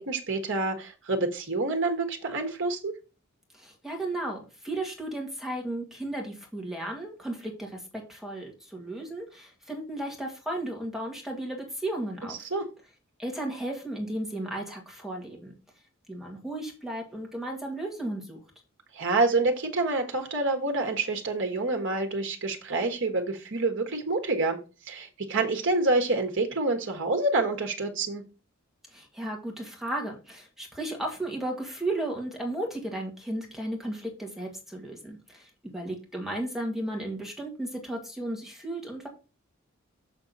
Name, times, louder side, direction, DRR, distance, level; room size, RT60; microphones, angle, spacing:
voice 1, 0.0-2.9 12.5-12.6 18.9-24.6 24.8-28.2, right 3 dB, 60° right, 5 dB, 1.3 m, -27 dB
voice 2, 3.5-12.4 13.2-15.6 16.1-18.4 28.9-39.1, right 1 dB, ahead, 0 dB, 1.8 m, -34 dB
6.3 x 6.2 x 4.0 m, 0.32 s
head